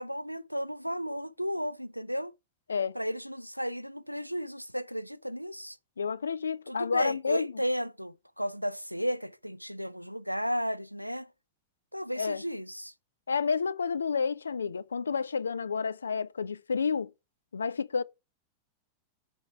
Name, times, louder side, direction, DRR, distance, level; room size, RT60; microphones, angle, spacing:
voice 1, 0.0-2.3 2.9-5.8 6.7-11.3 11.9-12.9, equal, 90° right, 0.4 m, -34 dB
voice 2, 6.0-7.5 12.2-12.4 13.3-17.1 17.5-18.0, left 5 dB, 75° left, 0.4 m, -30 dB
7.2 x 4.4 x 5.4 m
figure-of-eight pair, 90°, 0 cm